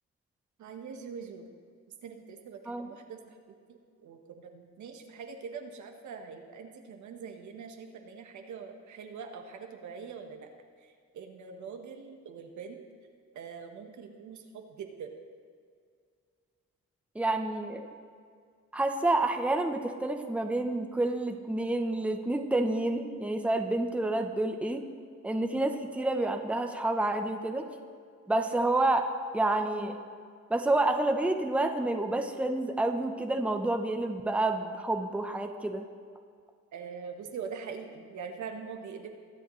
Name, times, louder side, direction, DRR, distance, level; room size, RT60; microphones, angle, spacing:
voice 1, 0.6-1.5 2.0-3.3 3.7-10.5 11.1-12.9 13.3-15.1 36.7-39.1, right 6 dB, 70° right, 4 dB, 1.3 m, -43 dB
voice 2, 17.1-17.9 18.7-24.8 25.2-27.7 28.3-29.1 29.3-29.9 30.5-35.9, right 2 dB, 5° right, 4 dB, 0.8 m, -29 dB
21.0 x 7.8 x 3.2 m, 2.1 s
cardioid pair, 90°, 30 cm